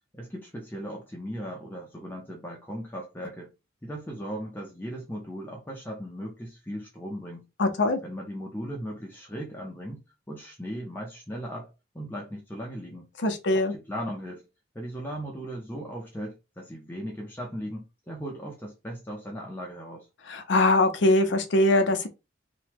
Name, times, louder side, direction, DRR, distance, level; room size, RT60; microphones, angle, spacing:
voice 1, 0.1-3.5 3.8-7.4 8.0-11.7 11.9-13.1 13.5-14.5 14.7-20.1, equal, 10° left, 0.5 m, -37 dB
voice 2, 7.6-8.0 13.2-13.7 20.3-22.1, left 2 dB, 70° left, 0.6 m, -22 dB
2.9 x 2.2 x 3.3 m
head